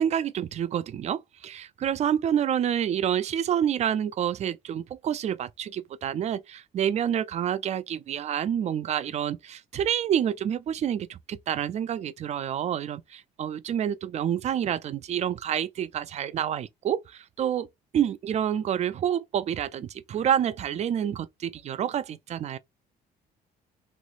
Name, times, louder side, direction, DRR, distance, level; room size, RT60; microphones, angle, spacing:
voice 1, 0.0-17.7 17.9-22.6, right 9 dB, 40° right, 0.4 m, -28 dB
3.1 x 3.1 x 2.5 m
cardioid pair, 110°, 17 cm